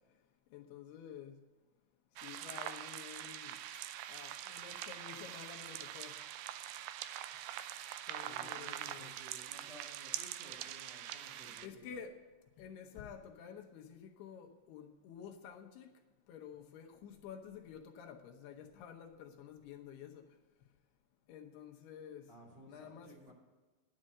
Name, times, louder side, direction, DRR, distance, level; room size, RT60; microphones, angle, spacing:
voice 1, 0.5-1.4 2.2-3.6 4.1-6.2 8.1-9.1 11.6-12.2 12.6-15.9 16.3-20.2 21.3-22.3 22.7-23.3, left 8 dB, 75° left, 2.8 m, -51 dB
sound 1, 2.2-11.7, right 12 dB, 85° right, 2.2 m, -44 dB
voice 2, 8.2-12.0 22.3-23.3, right 1 dB, 45° right, 2.7 m, -57 dB
10.0 x 7.7 x 7.5 m
omnidirectional pair, 4.8 m